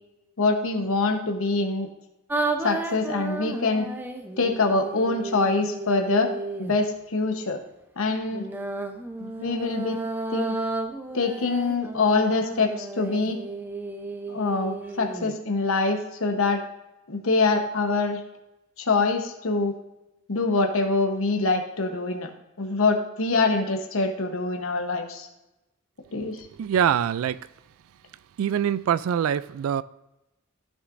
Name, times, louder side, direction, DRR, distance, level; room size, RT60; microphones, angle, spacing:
voice 1, 0.4-1.9 2.6-3.9 4.4-6.3 6.7-7.6 8.0-8.5 9.2-10.0 10.3-10.6 11.1-13.4 14.3-16.6 17.1-18.2 18.8-19.7 20.3-22.3 22.6-25.3 26.1-26.5, left 3 dB, 70° left, 1.0 m, -24 dB
sound 1, 2.3-6.8 8.3-15.3, right 2 dB, 10° right, 0.7 m, -33 dB
voice 2, 26.6-27.4 28.4-29.8, right 9 dB, 75° right, 0.3 m, -24 dB
14.0 x 6.4 x 2.6 m
head